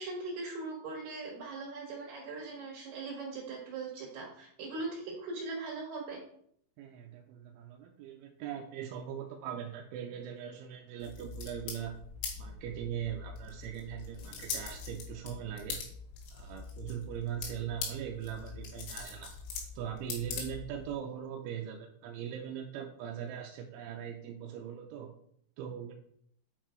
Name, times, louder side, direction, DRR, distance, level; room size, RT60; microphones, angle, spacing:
voice 1, 0.0-6.2, right 3 dB, 65° right, -3 dB, 3.2 m, -40 dB
voice 2, 6.8-12.0 12.4-15.8 16.3-19.3 19.8-25.1 25.6-25.9, right 9 dB, 85° right, 1 dB, 3.0 m, -40 dB
sound 1, 11.0-21.0, left 5 dB, 85° left, 4.3 m, -42 dB
8.7 x 4.7 x 4.4 m, 0.65 s
omnidirectional pair, 5.7 m